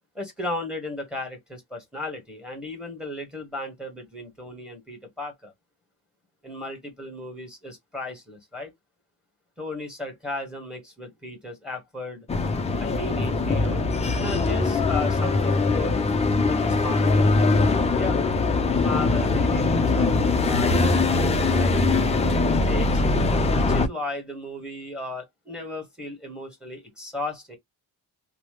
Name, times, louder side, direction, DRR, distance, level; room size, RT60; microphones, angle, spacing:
voice 1, 0.1-5.5 6.4-8.7 9.6-12.3 12.8-13.9 14.1-16.0 16.4-17.5 17.9-18.2 18.8-22.0 22.6-23.0 23.5-27.6, left 2 dB, ahead, 1.1 m, -35 dB
sound 1, 12.3-23.9, left 3 dB, 20° left, 0.3 m, -22 dB
3.0 x 2.1 x 3.1 m
wide cardioid pair, 180°, 37 cm